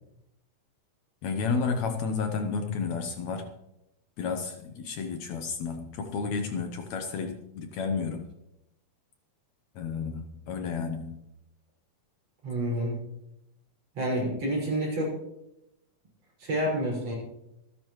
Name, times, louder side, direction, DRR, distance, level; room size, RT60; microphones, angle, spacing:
voice 1, 1.2-3.5 4.2-8.3 9.8-11.2, left 5 dB, 70° left, 5 dB, 2.1 m, -31 dB
voice 2, 12.4-13.0 14.0-15.1 16.4-17.1, right 1 dB, 50° right, -4 dB, 6.8 m, -28 dB
25.5 x 10.0 x 3.1 m, 0.87 s
omnidirectional pair, 3.7 m